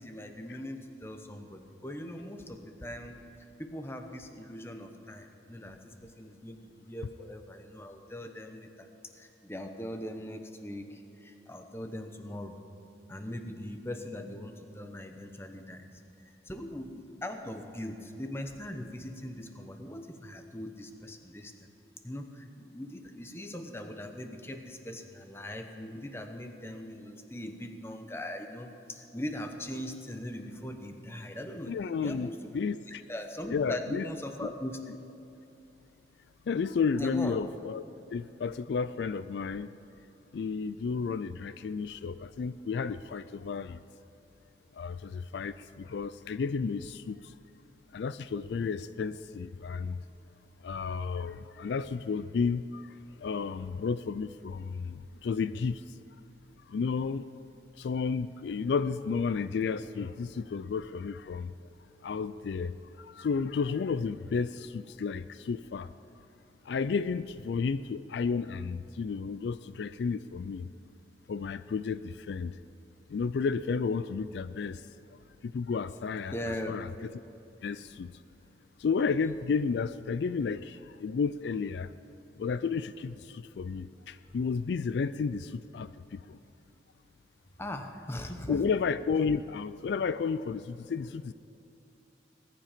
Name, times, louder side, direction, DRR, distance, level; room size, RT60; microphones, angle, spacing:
voice 1, 0.0-3.2 3.6-8.9 9.2-12.6 13.1-15.9 16.4-21.7 22.0-32.6 32.9-34.8 37.0-37.4 76.3-76.7 87.6-88.6, left 1 dB, 15° left, 6 dB, 0.9 m, -40 dB
voice 2, 31.7-33.0 33.5-34.1 34.4-34.5 36.5-37.8 38.1-39.7 40.3-43.8 44.7-47.3 47.9-50.0 50.6-56.0 56.7-57.2 57.8-61.5 62.0-65.9 66.6-70.7 71.3-72.6 73.1-76.3 76.7-76.9 77.6-78.2 78.8-81.9 82.4-86.4 88.5-91.3, left 5 dB, 70° left, 14 dB, 0.3 m, -32 dB
20.5 x 10.0 x 5.1 m, 2.8 s
head